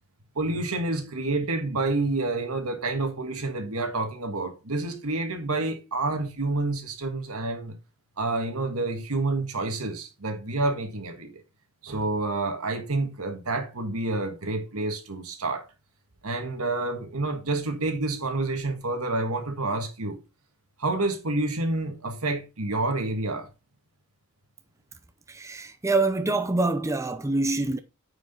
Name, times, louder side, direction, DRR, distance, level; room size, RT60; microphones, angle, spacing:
voice 1, 0.4-7.8 8.2-11.4 11.8-15.7 16.2-20.2 20.8-23.5, right 2 dB, 75° right, 1.7 m, -28 dB
voice 2, 25.3-27.8, right 2 dB, 15° right, 0.5 m, -25 dB
9.4 x 5.1 x 3.8 m
head